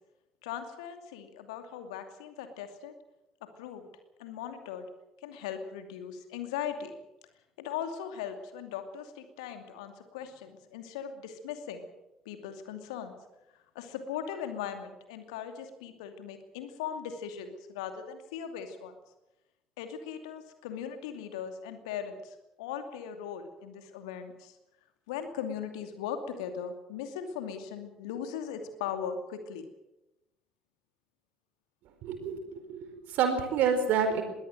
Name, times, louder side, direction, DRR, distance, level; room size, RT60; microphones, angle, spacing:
voice 1, 0.4-2.9 3.4-3.9 4.2-4.9 5.2-6.9 7.6-11.9 12.2-13.1 13.7-18.9 19.8-24.6 25.1-29.6, left 8 dB, 70° left, 7 dB, 2.6 m, -39 dB
voice 2, 32.0-32.4 32.7-34.2, right 6 dB, 60° right, 8 dB, 4.6 m, -28 dB
22.0 x 17.0 x 7.9 m, 0.94 s
figure-of-eight pair, 50°, 3 cm